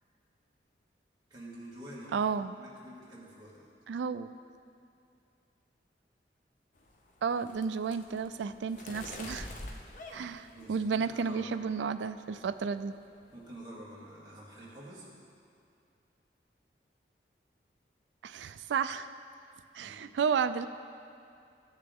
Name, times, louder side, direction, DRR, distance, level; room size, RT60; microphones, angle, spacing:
voice 1, 1.3-3.7 10.5-11.5 13.3-15.1 19.8-20.2, right 1 dB, 20° right, -7 dB, 2.0 m, -48 dB
voice 2, 2.1-2.5 3.9-4.3 7.2-9.5 10.1-12.9 18.2-19.1 19.7-20.7, right 6 dB, 85° right, 11 dB, 0.3 m, -32 dB
sound 1, 6.8-11.2 11.6-12.0 12.3-12.6 12.9-13.5, left 2 dB, 45° left, 0.7 m, -46 dB
13.5 x 6.5 x 3.5 m, 2.5 s
head